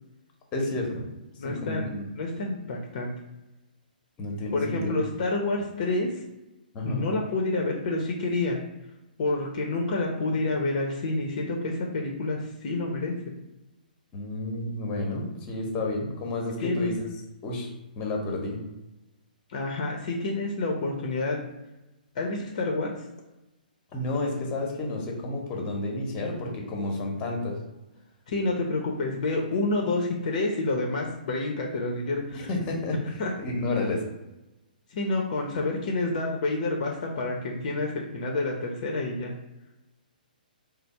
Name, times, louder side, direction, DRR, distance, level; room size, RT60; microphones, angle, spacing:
voice 1, 0.5-1.1 1.4-2.0 4.2-5.0 6.7-7.1 14.1-17.1 17.4-17.7 18.0-18.6 23.9-27.6 32.3-34.0, left 2 dB, 25° left, 1 dB, 0.9 m, -31 dB
voice 2, 1.4-1.9 2.1-3.1 4.5-6.2 6.8-8.6 9.2-13.1 16.6-16.9 19.5-21.4 22.1-22.9 28.3-32.5 33.2-33.3 34.9-39.3, left 2 dB, 50° left, 0 dB, 0.6 m, -28 dB
3.3 x 2.0 x 4.1 m, 0.99 s
figure-of-eight pair, 130°, 5 cm